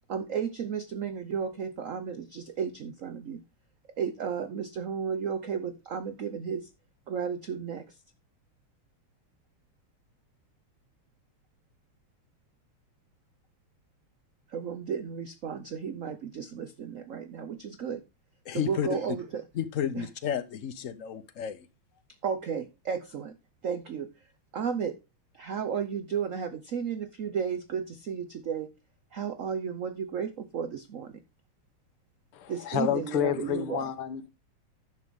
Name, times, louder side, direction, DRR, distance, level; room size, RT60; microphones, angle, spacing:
voice 1, 0.1-3.4 4.0-6.7 7.1-8.0 14.5-18.0 18.5-19.5 19.9-20.1 22.2-23.4 23.6-24.3 24.5-24.9 25.3-28.7 29.1-31.2 32.5-33.9, right 7 dB, 75° right, 0.7 m, -33 dB
voice 2, 18.5-19.0 19.6-21.6, left 9 dB, 65° left, 0.8 m, -32 dB
voice 3, 32.3-34.3, left 10 dB, 90° left, 1.9 m, -29 dB
11.0 x 7.5 x 3.6 m
omnidirectional pair, 2.4 m